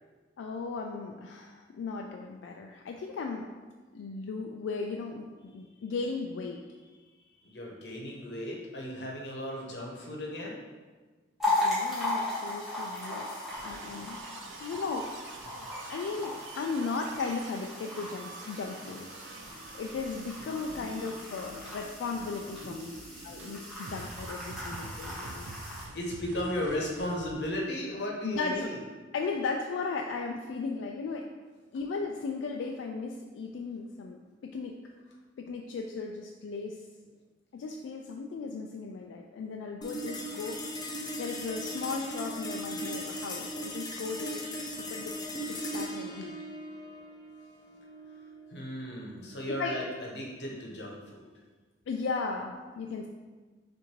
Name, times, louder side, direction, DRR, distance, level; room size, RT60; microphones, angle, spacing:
voice 1, 0.4-3.5 3.9-6.6 11.5-13.3 13.6-14.2 14.6-15.1 15.9-19.1 19.8-22.9 23.2-25.5 28.2-28.7 29.1-31.3 31.7-34.8 35.4-36.8 37.5-40.6 41.2-45.1 45.4-46.3 49.6-49.7 51.9-53.1, left 4 dB, 85° left, 1 dB, 0.3 m, -36 dB
voice 2, 7.2-10.6 19.5-19.8 20.7-22.1 22.6-23.5 25.9-28.8 31.7-31.8 46.2-46.3 48.5-51.3, left 1 dB, 65° left, -2 dB, 0.9 m, -37 dB
sound 1, 11.4-25.8, left 2 dB, ahead, 1.4 m, -37 dB
sound 2, 13.5-27.3, right 3 dB, 80° right, 0.4 m, -47 dB
sound 3, 39.8-50.4, equal, 20° left, 0.4 m, -39 dB
6.3 x 2.6 x 2.9 m, 1.4 s
head